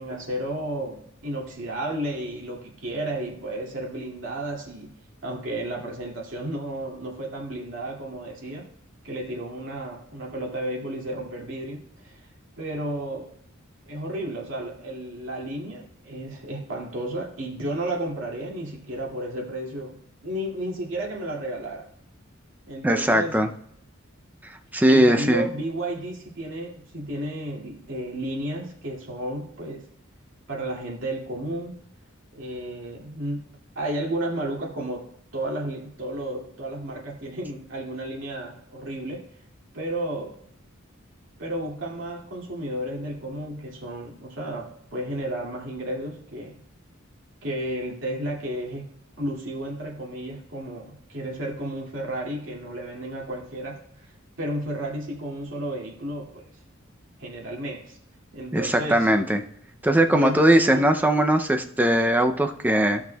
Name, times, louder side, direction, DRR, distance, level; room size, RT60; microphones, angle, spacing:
voice 1, 0.0-4.9 5.2-8.7 9.0-12.2 12.6-13.3 13.9-21.9 22.7-23.4 24.9-29.8 30.5-31.8 32.3-33.5 33.8-39.3 39.7-40.3 41.4-46.6 47.4-48.9 49.2-53.8 54.4-56.4 57.2-58.0 58.3-59.1 60.1-60.9, right 1 dB, 65° right, -2 dB, 2.4 m, -32 dB
voice 2, 22.8-23.5 24.7-25.5 58.5-59.4 59.8-63.0, right 1 dB, 10° right, 6 dB, 0.5 m, -20 dB
16.0 x 6.1 x 2.3 m, 0.69 s
head